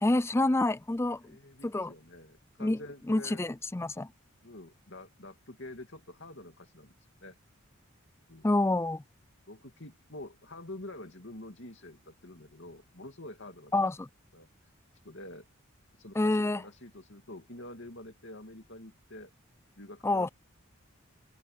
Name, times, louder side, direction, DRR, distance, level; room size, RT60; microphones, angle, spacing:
voice 1, 0.0-1.4 1.6-1.9 2.6-2.8 3.1-4.1 8.4-9.0 13.7-14.1 16.2-16.6 20.0-20.3, left 2 dB, 10° left, 0.4 m, -27 dB
voice 2, 1.2-3.4 4.4-7.4 8.3-8.5 9.5-14.0 14.3-14.7 15.0-15.5 15.9-19.3 19.8-20.3, left 1 dB, 60° left, 2.7 m, -47 dB
head